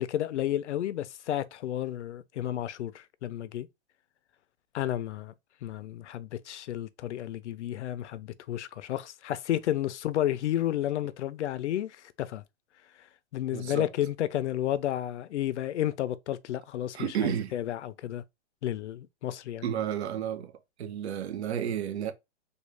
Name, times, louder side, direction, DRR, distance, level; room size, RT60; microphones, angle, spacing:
voice 1, 0.0-3.7 4.7-5.3 5.6-12.4 13.3-18.2 18.6-19.7, left 12 dB, 75° left, 0.6 m, -32 dB
voice 2, 13.5-13.9 16.9-17.5 19.6-20.5 20.8-22.1, right 9 dB, 65° right, 0.7 m, -31 dB
3.6 x 2.4 x 3.2 m
hypercardioid pair, 165°, 35 cm